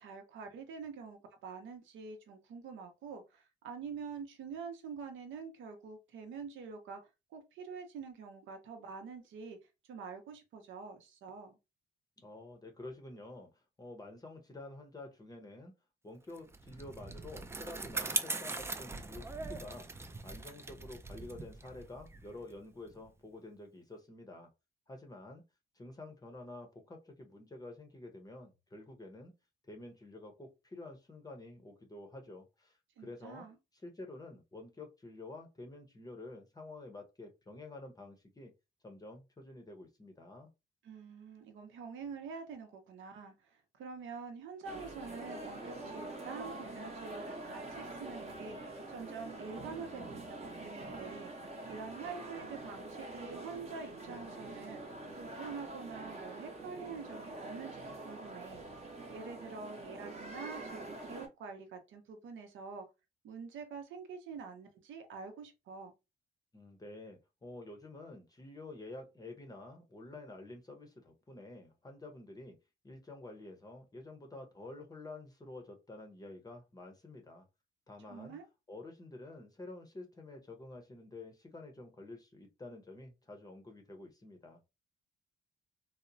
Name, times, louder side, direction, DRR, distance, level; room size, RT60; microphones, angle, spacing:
voice 1, 0.0-7.0 7.3-9.6 9.9-11.6 33.0-33.6 40.8-58.6 59.1-62.9 63.2-65.9 78.1-78.4, right 5 dB, 75° right, 0.7 m, -46 dB
voice 2, 12.2-15.7 16.0-24.5 24.9-25.4 25.7-29.3 29.6-33.5 33.8-38.5 38.8-40.5 66.5-72.6 72.8-77.5 77.9-78.4 78.7-84.6, left 2 dB, 20° left, 0.6 m, -49 dB
Bicycle, 16.4-23.1, right 3 dB, 15° right, 0.3 m, -41 dB
sound 1, 44.6-61.3, right 2 dB, 35° right, 0.8 m, -45 dB
2.8 x 2.0 x 2.6 m
cardioid pair, 90°, 20 cm